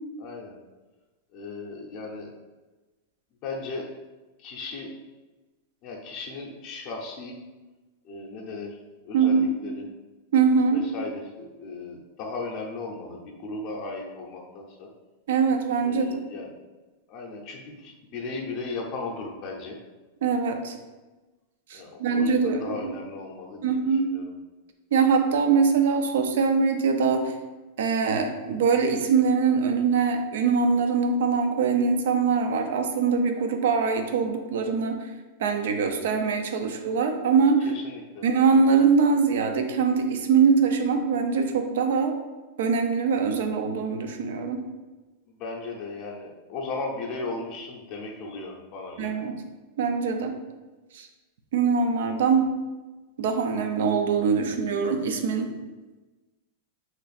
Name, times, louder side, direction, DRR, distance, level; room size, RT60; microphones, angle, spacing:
voice 1, 0.2-0.6 1.3-2.3 3.4-3.9 4.4-4.9 5.8-7.3 8.0-8.8 9.0-9.8 10.7-14.9 15.8-16.5 17.1-19.8 21.7-24.3 37.6-38.3 45.3-49.2, left 3 dB, 35° left, 0 dB, 0.5 m, -36 dB
voice 2, 9.1-9.5 10.3-10.8 15.3-16.1 20.2-20.8 21.7-22.9 23.6-24.1 24.9-27.3 27.8-35.1 35.4-37.7 38.2-42.1 42.6-44.6 49.0-49.3 49.8-50.4 50.9-51.1 51.5-52.5 53.2-55.5, right 5 dB, 75° right, 6 dB, 0.4 m, -23 dB
3.0 x 2.4 x 4.1 m, 1.2 s
supercardioid pair, 155°, 0 cm